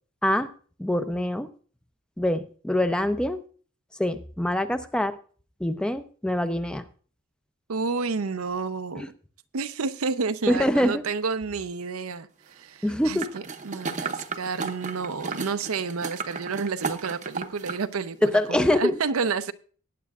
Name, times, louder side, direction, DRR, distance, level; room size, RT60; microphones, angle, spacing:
voice 1, 0.8-1.5 2.2-3.4 4.0-5.1 5.6-6.8 9.0-9.1 10.5-11.0 12.8-13.3 18.2-19.0, left 1 dB, 5° left, 10 dB, 0.4 m, -24 dB
voice 2, 7.7-9.0 9.5-12.3 12.6-19.5, right 4 dB, 85° right, 11 dB, 0.6 m, -30 dB
sound 1, 13.2-17.8 18.2-18.3, right 4 dB, 35° right, 0.7 m, -34 dB
18.5 x 9.4 x 2.4 m, 0.41 s
head